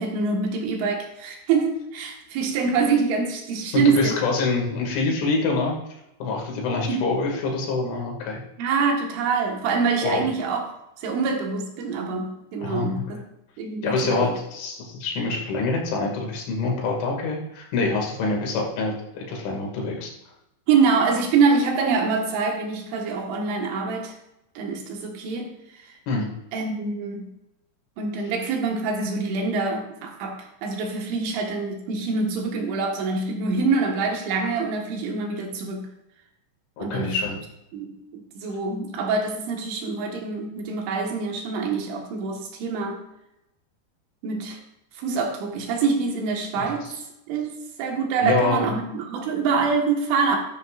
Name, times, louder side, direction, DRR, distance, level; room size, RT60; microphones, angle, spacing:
voice 1, 0.0-4.2 6.9-7.1 8.6-10.6 11.0-13.2 13.6-14.3 20.7-24.1 24.6-25.5 26.5-27.3 28.0-35.9 36.8-37.2 37.7-43.0 44.2-44.6 45.0-46.9 47.3-50.4, right 4 dB, 85° right, 1 dB, 4.1 m, -25 dB
voice 2, 3.7-5.8 6.2-8.4 10.0-10.3 12.6-13.0 13.8-20.1 26.1-26.3 36.8-37.4 46.8-46.9 48.2-48.7, left 3 dB, 90° left, -1 dB, 4.8 m, -25 dB
13.5 x 12.5 x 2.5 m, 0.87 s
omnidirectional pair, 5.3 m